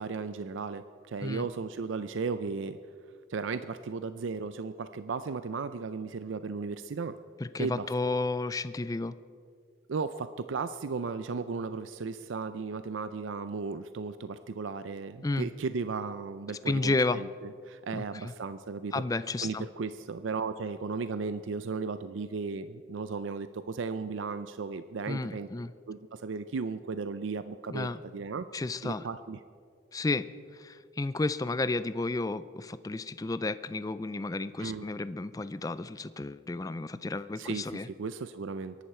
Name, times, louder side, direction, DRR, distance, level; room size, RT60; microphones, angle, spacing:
voice 1, 0.0-2.8 3.3-7.1 7.6-7.9 9.9-19.0 19.4-25.5 25.9-28.5 28.8-29.4 34.6-34.9 37.4-38.8, right 4 dB, 85° right, 12 dB, 0.5 m, -35 dB
voice 2, 7.5-9.2 15.2-15.5 16.7-17.2 17.9-18.3 18.9-19.7 25.1-25.7 27.7-28.0 28.5-29.0 29.9-30.3 30.5-37.9, left 3 dB, 20° left, 14 dB, 0.3 m, -32 dB
22.5 x 11.5 x 4.4 m, 2.1 s
head